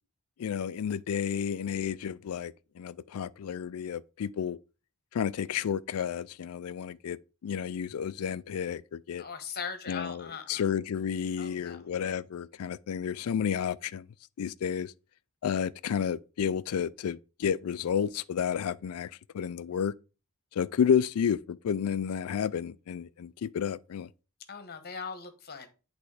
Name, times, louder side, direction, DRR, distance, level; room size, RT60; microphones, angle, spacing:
voice 1, 0.4-4.6 5.1-7.2 7.4-9.2 9.9-14.1 14.4-14.9 15.4-19.9 20.5-24.1, left 7 dB, 80° left, 0.4 m, -31 dB
voice 2, 9.2-10.6 11.4-11.8 24.5-25.7, left 5 dB, 45° left, 1.2 m, -40 dB
8.3 x 3.5 x 4.8 m
head